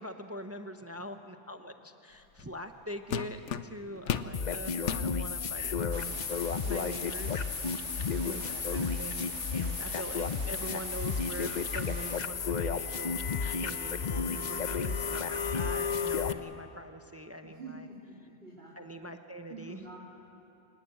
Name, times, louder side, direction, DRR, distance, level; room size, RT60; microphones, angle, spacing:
voice 1, 0.0-7.7 8.2-13.1 13.6-17.9 18.8-19.8, equal, 15° right, 6 dB, 0.8 m, -43 dB
sound 1, 2.4-2.6 3.1-4.3 4.8-5.1 5.8-5.9 6.4-7.1, left 8 dB, 85° left, 1.1 m, -34 dB
voice 2, 3.8-4.3 7.8-8.3 8.5-8.9 17.4-18.7 19.5-20.0, right 3 dB, 55° right, -6 dB, 3.5 m, -49 dB
sound 2, 4.3-16.3, left 5 dB, 45° left, 0.8 m, -32 dB
sound 3, 5.9-12.2, right 8 dB, 80° right, 1.1 m, -47 dB
27.0 x 19.0 x 7.9 m, 2.8 s
omnidirectional pair, 1.2 m